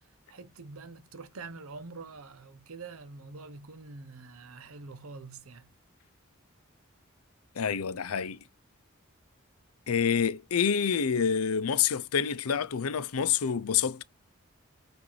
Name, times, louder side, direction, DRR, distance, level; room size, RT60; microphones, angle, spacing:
voice 1, 0.3-5.7, right 3 dB, 85° right, 0.8 m, -45 dB
voice 2, 7.6-8.4 9.9-14.0, left 7 dB, 90° left, 0.6 m, -27 dB
6.0 x 2.6 x 3.2 m
head